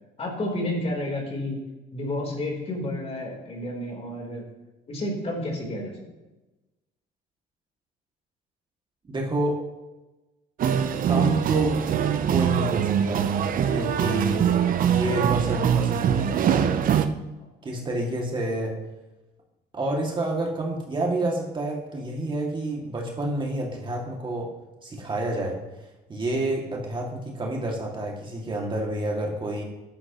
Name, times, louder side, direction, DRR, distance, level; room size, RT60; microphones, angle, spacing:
voice 1, 0.2-1.6 1.9-4.4 4.9-6.0, left 1 dB, 35° left, 0 dB, 4.0 m, -30 dB
voice 2, 9.0-9.6 11.1-11.8 12.3-13.3 13.7-14.4 14.9-16.8 17.6-18.8 19.7-24.5 24.8-25.6 26.1-29.6, right 1 dB, 30° right, -1 dB, 2.5 m, -29 dB
sound 1, 10.6-17.1, right 8 dB, 55° right, 0.8 m, -23 dB
13.5 x 11.0 x 3.1 m, 1.1 s
cardioid pair, 110°, 17 cm